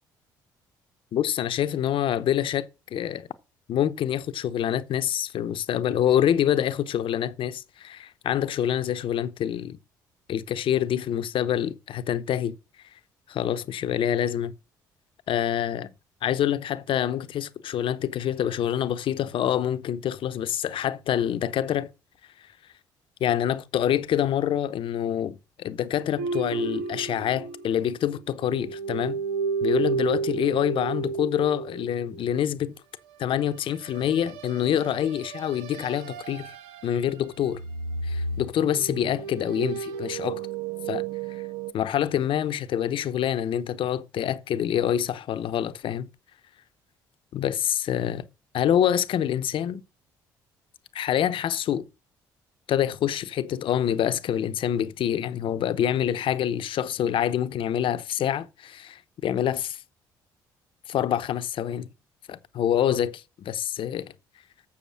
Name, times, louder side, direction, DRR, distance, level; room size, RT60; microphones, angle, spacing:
voice 1, 1.1-3.3 3.7-9.8 10.3-12.6 13.3-14.5 15.3-15.9 16.2-21.9 23.2-29.2 29.6-32.7 33.2-36.5 36.8-37.6 38.0-40.4 40.9-41.0 41.7-46.1 47.3-48.2 48.5-49.8 50.9-51.8 52.7-59.8 60.9-61.9 62.3-64.1, left 10 dB, 60° left, 0.8 m, -26 dB
sound 1, 26.2-28.1 28.4-32.2 33.8-37.1 37.4-41.7, right 5 dB, 80° right, 0.9 m, -32 dB
7.2 x 6.7 x 6.3 m
hypercardioid pair, 55°, 10 cm